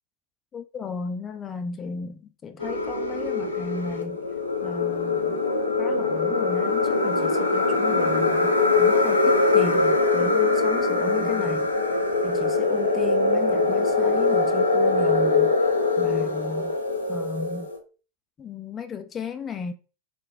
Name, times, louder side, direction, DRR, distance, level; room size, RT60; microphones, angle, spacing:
voice 1, 0.5-4.3 4.6-5.4 5.8-15.6 16.0-16.8 17.1-17.7 18.4-19.7, left 5 dB, 25° left, 0.3 m, -35 dB
sound 1, 2.6-17.8, left 3 dB, 80° left, 0.5 m, -22 dB
3.7 x 2.2 x 2.6 m
figure-of-eight pair, 90°, 0 cm